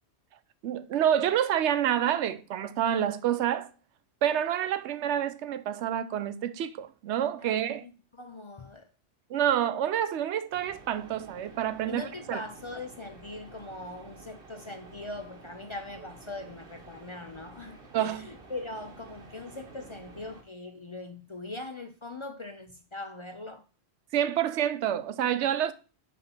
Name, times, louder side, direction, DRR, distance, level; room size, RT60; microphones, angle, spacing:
voice 1, 0.6-3.7 4.2-7.8 9.3-12.4 17.9-18.2 24.1-25.7, right 10 dB, 90° right, 0.9 m, -28 dB
voice 2, 7.4-7.9 8.2-8.9 11.9-23.6, left 2 dB, 40° left, 0.5 m, -41 dB
sound 1, 10.5-20.4, right 3 dB, 55° right, 1.4 m, -51 dB
5.7 x 3.6 x 5.7 m
omnidirectional pair, 1.1 m